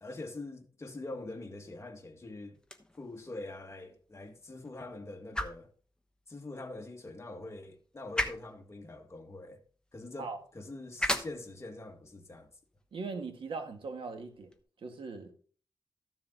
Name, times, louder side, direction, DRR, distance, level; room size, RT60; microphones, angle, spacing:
voice 1, 0.0-2.6 3.0-5.7 6.3-9.6 9.9-12.5, left 2 dB, 30° left, 2.0 m, -44 dB
sound 1, 2.5-14.6, left 1 dB, 10° left, 1.2 m, -41 dB
voice 2, 12.9-14.5 14.8-15.4, right 4 dB, 90° right, 1.8 m, -40 dB
14.0 x 7.0 x 3.9 m
wide cardioid pair, 105°, 9 cm